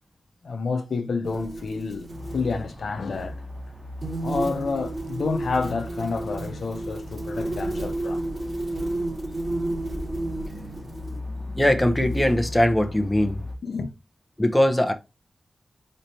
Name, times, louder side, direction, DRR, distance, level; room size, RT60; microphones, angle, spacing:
voice 1, 0.4-3.5 4.2-8.2 13.6-13.9, left 4 dB, 80° left, 0.6 m, -29 dB
sound 1, 1.2-2.6 3.1-3.3 4.0-11.2 12.0-12.5, right 2 dB, 45° right, 2.7 m, -32 dB
sound 2, 2.1-13.5, left 2 dB, 15° right, 1.2 m, -38 dB
voice 2, 11.6-13.4 14.4-14.9, left 1 dB, 5° left, 0.6 m, -21 dB
4.2 x 3.2 x 2.7 m
wide cardioid pair, 130°, 0 cm